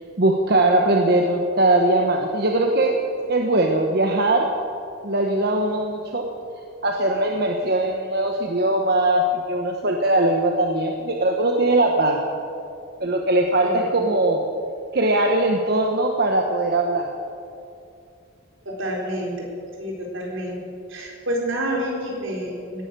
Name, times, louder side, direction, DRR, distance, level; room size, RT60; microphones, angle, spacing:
voice 1, 0.2-4.5 5.0-6.2 6.8-12.2 13.0-14.4 14.9-17.1, right 2 dB, 55° right, 2 dB, 1.1 m, -20 dB
voice 2, 13.6-13.9 18.7-19.5 19.8-20.6 20.9-22.8, right 1 dB, 80° right, -1 dB, 4.1 m, -28 dB
17.0 x 11.5 x 6.8 m, 2.5 s
head